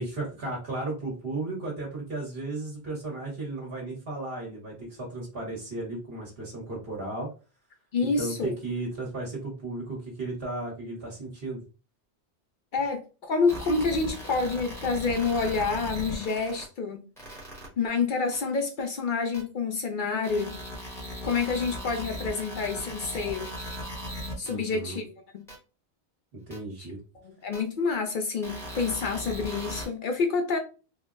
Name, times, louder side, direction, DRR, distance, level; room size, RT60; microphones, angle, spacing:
voice 1, 0.0-7.3 8.0-11.6 24.5-25.0 26.4-27.0, right 2 dB, 60° right, 1.2 m, -35 dB
voice 2, 7.9-8.5 12.7-17.0 17.8-20.6 21.2-23.5 24.4-25.5 26.8-26.9 27.1-30.6, left 4 dB, 60° left, 0.6 m, -28 dB
sound 1, 13.5-16.6 17.2-17.7 18.3-18.4 19.3-19.4 20.2-24.5 25.5-25.6 26.5-26.6 27.5-27.6 28.4-29.9, equal, 5° left, 0.8 m, -38 dB
3.8 x 2.0 x 2.4 m
omnidirectional pair, 1.1 m